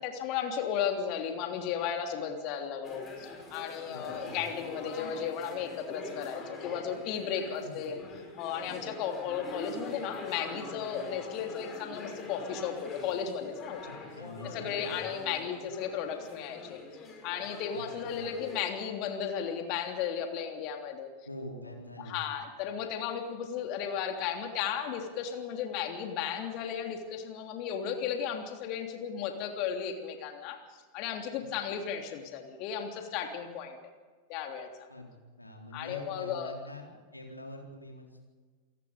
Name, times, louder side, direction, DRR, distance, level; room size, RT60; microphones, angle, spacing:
voice 1, 0.0-8.0 8.4-13.8 14.5-16.8 17.2-21.1 22.0-33.8 34.3-34.9 35.7-36.6, left 8 dB, 40° left, 4 dB, 3.2 m, -35 dB
sound 1, 2.8-18.7, left 2 dB, 20° left, 6.7 m, -44 dB
voice 2, 3.9-4.4 7.6-7.8 13.8-15.0 17.7-18.3 21.3-22.2 31.4-31.5 34.9-35.1 35.4-38.2, left 1 dB, 85° left, 1 dB, 3.9 m, -45 dB
28.0 x 18.5 x 5.2 m, 1.4 s
figure-of-eight pair, 90°, 0 cm